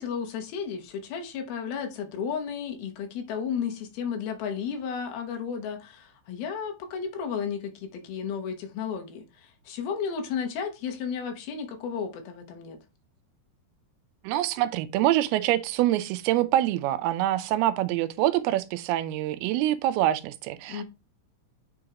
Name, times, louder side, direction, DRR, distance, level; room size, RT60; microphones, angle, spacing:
voice 1, 0.0-12.8 20.7-20.8, left 7 dB, 75° left, 2.9 m, -33 dB
voice 2, 14.2-20.8, right 13 dB, 85° right, 2.5 m, -25 dB
7.8 x 4.9 x 2.9 m
omnidirectional pair, 4.5 m